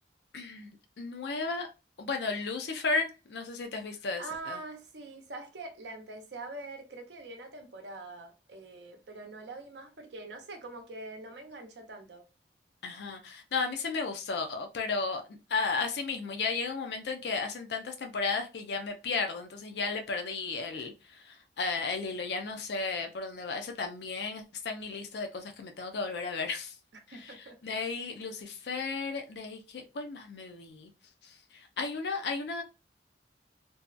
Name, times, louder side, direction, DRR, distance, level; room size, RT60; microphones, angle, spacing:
voice 1, 0.3-0.7 1.0-1.7 2.0-4.6 12.8-15.2 15.5-20.9 21.2-26.7 27.1-27.4 27.6-30.9 31.8-32.6, left 4 dB, 70° left, 0.4 m, -34 dB
voice 2, 4.2-12.2 27.1-27.6, right 2 dB, 75° right, 0.6 m, -44 dB
2.6 x 2.2 x 2.3 m
head